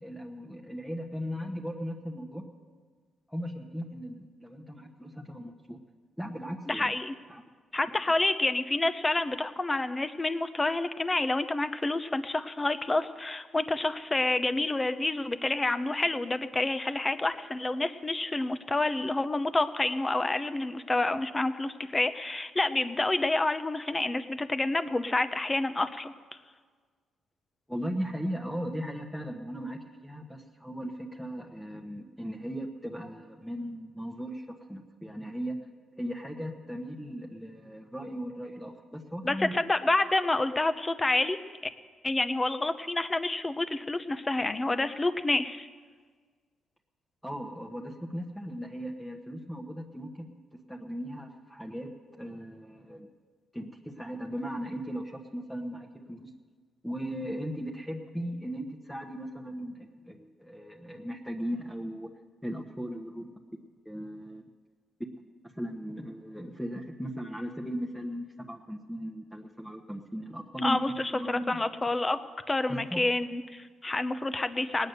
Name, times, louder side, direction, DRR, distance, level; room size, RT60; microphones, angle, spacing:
voice 1, 0.0-2.4 3.3-5.8 6.2-6.9 7.3-7.4 27.7-35.6 36.0-39.5 47.2-50.3 50.7-51.9 52.2-53.1 53.5-56.3 56.8-62.1 62.4-63.3 63.8-64.4 65.4-71.6 72.7-73.0, equal, 5° left, 0 dB, 1.3 m, -37 dB
voice 2, 6.7-7.1 7.7-26.1 39.2-41.4 42.0-45.7 70.6-72.2 72.5-74.9, left 2 dB, 20° left, 11 dB, 0.8 m, -28 dB
19.0 x 9.3 x 6.8 m, 1.5 s
cardioid pair, 95°, 0 cm